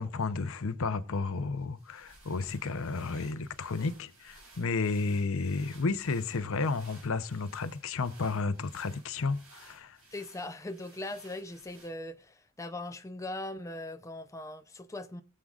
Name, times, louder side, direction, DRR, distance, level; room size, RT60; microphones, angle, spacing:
voice 1, 0.0-10.0, left 4 dB, 65° left, 0.8 m, -32 dB
sound 1, 1.6-12.2, right 2 dB, 75° right, 6.7 m, -57 dB
voice 2, 10.1-15.2, left 2 dB, 15° left, 0.6 m, -40 dB
20.5 x 7.7 x 2.4 m
head